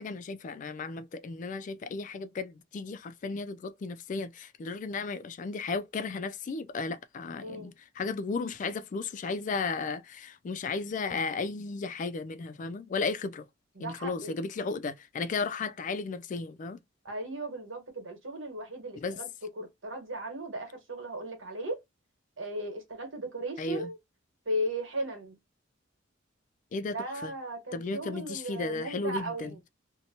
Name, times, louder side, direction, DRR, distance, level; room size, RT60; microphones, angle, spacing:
voice 1, 0.0-13.4 13.8-16.8 19.0-19.2 23.6-23.9 26.7-27.0 27.2-27.3 27.7-29.5, left 4 dB, 40° left, 0.3 m, -34 dB
voice 2, 7.4-7.7 13.8-14.3 17.0-19.3 19.6-21.8 22.4-24.0 24.4-25.4 26.9-29.6, right 1 dB, 80° right, 1.3 m, -36 dB
2.8 x 2.1 x 2.6 m
head